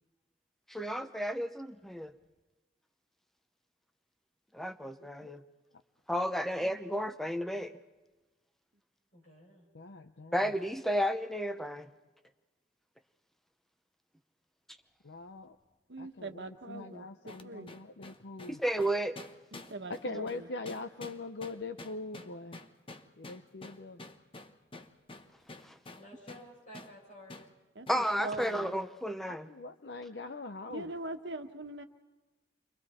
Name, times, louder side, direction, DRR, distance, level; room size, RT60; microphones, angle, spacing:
voice 1, 0.7-2.1 4.5-5.4 6.1-7.7 10.3-11.9 18.5-19.2 25.6-25.8 27.9-29.5, equal, ahead, 0.8 m, -32 dB
voice 2, 9.1-9.7 25.9-27.5, equal, 45° left, 7.5 m, -53 dB
voice 3, 9.7-10.4 15.0-15.6 16.0-18.6 20.0-22.6 23.2-24.0 29.3-30.9, left 3 dB, 70° left, 0.8 m, -42 dB
voice 4, 15.9-17.8 19.5-20.5 27.7-28.7 30.7-31.8, right 2 dB, 75° right, 1.3 m, -42 dB
sound 1, 17.3-26.5 26.7-27.0 27.3-27.5 27.9-28.1 28.4-28.6, left 2 dB, 30° left, 1.0 m, -49 dB
30.0 x 23.5 x 4.3 m
head